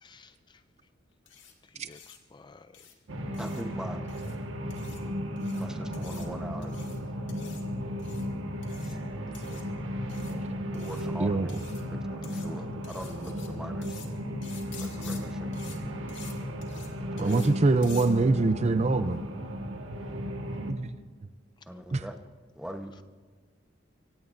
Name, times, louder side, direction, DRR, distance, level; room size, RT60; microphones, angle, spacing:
voice 1, 0.0-0.6 1.7-2.7 21.7-22.1, left 4 dB, 25° left, 12 dB, 0.4 m, -54 dB
sound 1, 1.3-1.5 1.9-2.2 2.7-2.9 3.3-3.6 4.1-4.4 4.7-5.0 5.4-5.7 5.9-6.3 6.6-7.0 7.3-7.6 8.0-8.3 8.6-8.9 9.3-9.6 10.1-10.3 10.7-11.1 11.5-11.8 12.2-12.5 12.8-13.5 13.8-14.1 14.4-15.2 15.5-15.8 16.1-16.3 16.6-16.9 17.2-17.5 17.8-18.1, left 8 dB, 70° left, 2.2 m, -49 dB
sound 2, 3.1-20.7, equal, 85° right, 1.5 m, -35 dB
voice 2, 3.4-4.0 5.6-6.7 8.8-9.0 10.7-11.5 12.2-14.0 14.8-15.5 17.1-17.5 21.7-22.1 22.6-23.0, equal, 5° right, 5 dB, 1.0 m, -41 dB
voice 3, 11.2-11.6 17.2-19.2 20.6-20.9 21.9-22.0, right 3 dB, 35° right, 11 dB, 0.5 m, -24 dB
25.0 x 16.5 x 2.6 m, 1.5 s
head